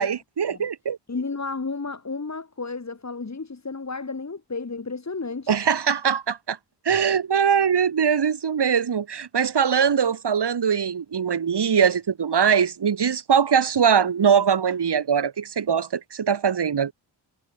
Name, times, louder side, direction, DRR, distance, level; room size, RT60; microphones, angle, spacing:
voice 1, 0.0-1.0 5.5-6.6 6.8-16.9, right 7 dB, 65° right, 3.0 m, -22 dB
voice 2, 1.1-5.6, left 4 dB, 35° left, 6.5 m, -32 dB
wide cardioid pair, 95°, 44 cm